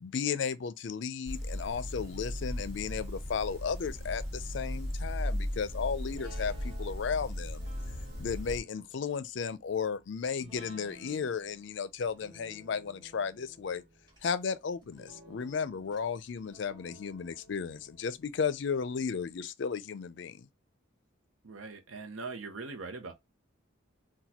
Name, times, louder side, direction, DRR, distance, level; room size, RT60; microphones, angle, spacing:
voice 1, 0.0-7.6 8.2-13.8 14.2-20.5, left 6 dB, 65° left, 0.4 m, -34 dB
sound 1, 1.3-8.6, equal, 50° right, 1.6 m, -37 dB
sound 2, 6.0-19.0 19.4-19.5, right 1 dB, 20° right, 1.4 m, -56 dB
voice 2, 21.4-23.1, right 4 dB, 85° right, 0.7 m, -41 dB
4.0 x 2.2 x 2.8 m
head